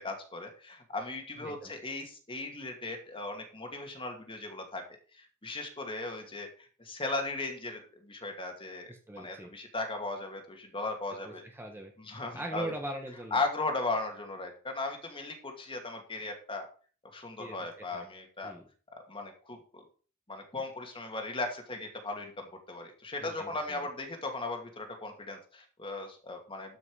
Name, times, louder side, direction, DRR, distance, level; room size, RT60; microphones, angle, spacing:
voice 1, 0.0-4.8 5.1-11.4 12.0-12.7 13.3-16.7 17.1-18.5 19.1-19.8 20.3-26.8, left 2 dB, 25° left, 4 dB, 2.3 m, -37 dB
voice 2, 1.4-1.7 8.9-9.5 11.2-11.9 12.3-13.4 17.4-17.6 17.9-18.1 18.4-18.7 23.2-23.8, right 1 dB, 10° right, 2 dB, 1.4 m, -41 dB
13.0 x 6.1 x 4.9 m, 0.39 s
head